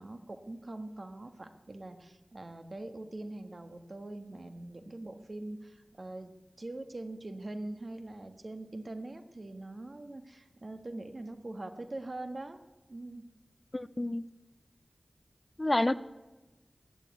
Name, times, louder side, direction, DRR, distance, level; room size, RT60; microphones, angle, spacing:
voice 1, 0.0-6.3 6.6-12.6 12.9-13.2, right 2 dB, 50° right, 8 dB, 1.4 m, -43 dB
voice 2, 13.7-14.2 15.6-16.0, left 1 dB, 30° left, 13 dB, 0.5 m, -28 dB
15.0 x 9.7 x 9.5 m, 1.1 s
wide cardioid pair, 75°, 0 cm